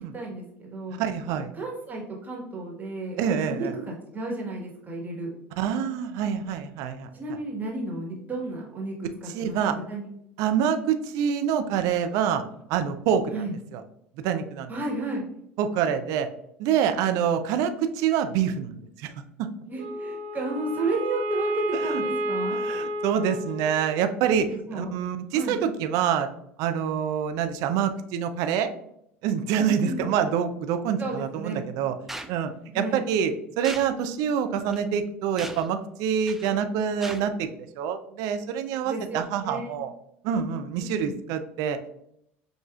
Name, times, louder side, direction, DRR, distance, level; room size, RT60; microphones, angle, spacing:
voice 1, 0.1-1.0 1.3-5.3 7.1-8.9 9.2-9.6 9.9-10.1 13.3-13.5 14.7-15.2 19.7-22.6 24.7-24.9 25.3-25.6 29.6-30.0 31.0-31.6 32.7-33.0 38.8-39.8 41.0-41.1, right 2 dB, 25° right, -1 dB, 1.4 m, -33 dB
voice 2, 1.0-1.5 3.2-3.7 5.6-7.1 9.3-9.8 10.4-12.4 12.7-13.4 13.7-13.8 14.2-14.7 15.6-16.3 16.6-19.1 19.4-19.5 21.8-22.0 22.5-26.3 26.6-28.7 29.2-31.9 32.3-32.5 32.7-37.5 37.8-39.9 40.2-41.8, right 8 dB, 65° right, 8 dB, 0.5 m, -26 dB
Wind instrument woodwind instrument, 19.7-24.2, equal, 85° right, 1.0 m, -31 dB
sound 1, 32.1-32.3 33.6-33.9 34.7-34.8 35.4-35.7 36.3-36.6 37.0-37.2, right 1 dB, 5° right, 0.4 m, -38 dB
6.5 x 2.5 x 2.4 m, 0.73 s
hypercardioid pair, 70°, 6 cm